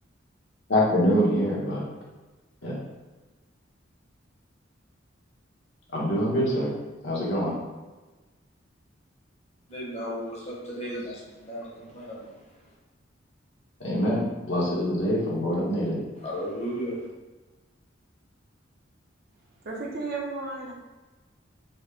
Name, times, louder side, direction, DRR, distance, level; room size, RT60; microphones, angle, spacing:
voice 1, 0.7-1.8 2.6-2.8 5.9-6.7 7.0-7.5 13.8-16.0, equal, 65° left, -5 dB, 1.1 m, -25 dB
voice 2, 9.7-12.7 16.2-17.1, equal, 35° left, -5 dB, 0.9 m, -35 dB
voice 3, 19.4-20.7, right 3 dB, 55° right, -2 dB, 0.7 m, -34 dB
4.0 x 2.1 x 3.4 m, 1.2 s
head